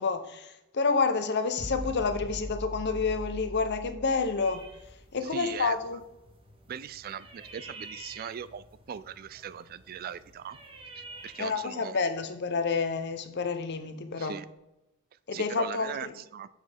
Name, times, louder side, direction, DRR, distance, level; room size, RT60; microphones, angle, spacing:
voice 1, 0.0-4.7 5.1-6.0 11.4-14.3 15.3-16.1, left 4 dB, 50° left, 0.7 m, -29 dB
sound 1, 1.6-5.0, equal, 10° right, 1.6 m, -40 dB
sound 2, 4.4-11.6, right 2 dB, 25° right, 1.1 m, -50 dB
voice 2, 5.2-5.8 6.7-10.6 10.9-12.0 14.1-14.5 15.3-16.5, right 8 dB, 45° right, 0.3 m, -40 dB
7.3 x 6.0 x 3.4 m
head